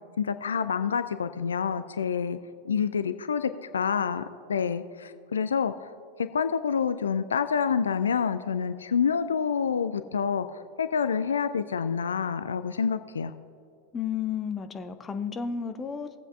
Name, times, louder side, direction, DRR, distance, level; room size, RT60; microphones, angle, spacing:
voice 1, 0.2-2.4 2.6-4.2 4.5-5.7 6.3-13.3, left 6 dB, 70° left, 11 dB, 0.3 m, -27 dB
voice 2, 13.9-16.2, left 7 dB, 20° left, 8 dB, 0.6 m, -32 dB
19.0 x 7.7 x 2.4 m, 2.5 s
figure-of-eight pair, 90°, 0 cm